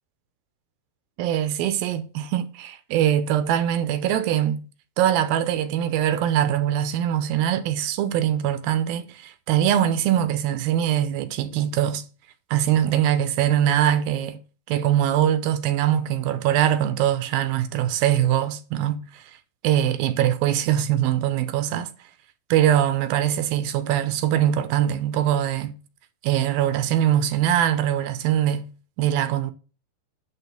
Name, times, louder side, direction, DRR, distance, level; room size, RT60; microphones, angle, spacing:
voice 1, 1.2-4.7 5.0-12.0 12.5-14.4 14.7-19.2 19.6-21.9 22.5-25.8 26.2-28.7 29.0-29.5, right 11 dB, 80° right, 2.5 m, -22 dB
10.0 x 3.7 x 6.9 m
omnidirectional pair, 4.3 m